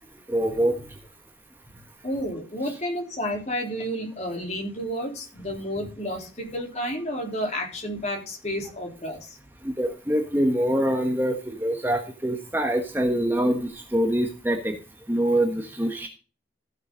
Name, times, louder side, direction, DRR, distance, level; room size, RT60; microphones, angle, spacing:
voice 1, 0.3-1.0 9.6-14.8 15.1-16.1, right 1 dB, 10° right, 3 dB, 1.2 m, -25 dB
voice 2, 2.0-9.4, equal, 40° left, 1 dB, 3.9 m, -31 dB
15.0 x 6.9 x 3.9 m, 0.34 s
head